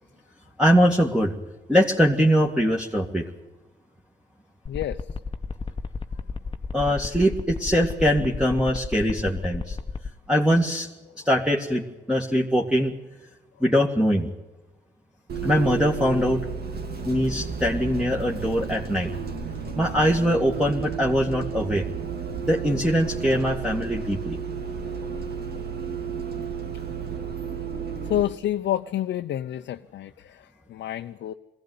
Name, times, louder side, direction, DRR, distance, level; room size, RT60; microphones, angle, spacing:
voice 1, 0.6-1.3 1.7-3.2 6.7-9.8 10.3-10.9 11.2-12.9 13.6-14.3 15.4-16.4 17.1-19.1 19.8-21.9 22.4-24.4, equal, 5° right, -1 dB, 2.2 m, -22 dB
voice 2, 4.7-5.0 28.1-31.3, left 12 dB, 80° left, 6 dB, 0.7 m, -29 dB
sound 1, 4.7-10.1, left 4 dB, 30° left, 1.1 m, -32 dB
Bus, 15.3-28.2, right 6 dB, 60° right, 2.5 m, -32 dB
20.5 x 16.5 x 9.5 m, 1.1 s
cardioid pair, 70°, 18 cm